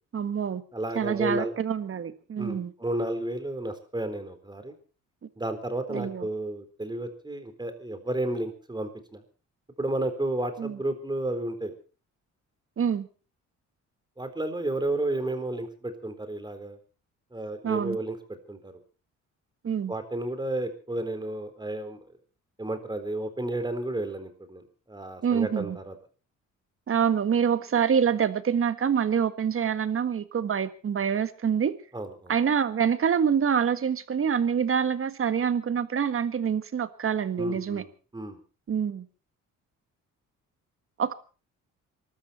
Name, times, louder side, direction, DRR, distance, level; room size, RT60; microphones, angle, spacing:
voice 1, 0.1-0.6 0.9-2.7 5.9-6.3 10.6-10.8 12.8-13.1 17.6-18.0 19.6-19.9 25.2-25.8 26.9-31.7 32.3-37.8 38.7-39.0 41.0-41.1, right 7 dB, 45° right, 12 dB, 1.7 m, -26 dB
voice 2, 0.7-1.5 2.4-4.7 5.4-9.2 9.8-11.7 14.2-16.8 17.3-18.2 18.5-18.7 19.9-22.0 22.6-24.6 24.9-25.9 31.9-32.4 37.4-38.4, right 1 dB, 15° right, 9 dB, 4.0 m, -32 dB
23.5 x 13.0 x 4.3 m, 0.36 s
cardioid pair, 90°, 30 cm